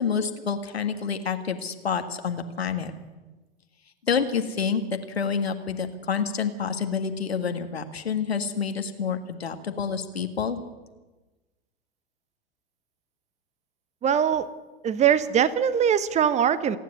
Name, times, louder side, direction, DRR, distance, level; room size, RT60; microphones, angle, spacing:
voice 1, 0.0-2.9 4.1-4.8 5.2-10.6, left 6 dB, 75° left, 7 dB, 1.8 m, -28 dB
voice 2, 14.0-14.5 14.8-16.8, right 8 dB, 20° right, 15 dB, 1.2 m, -22 dB
26.5 x 10.0 x 9.7 m, 1.2 s
figure-of-eight pair, 95°, 31 cm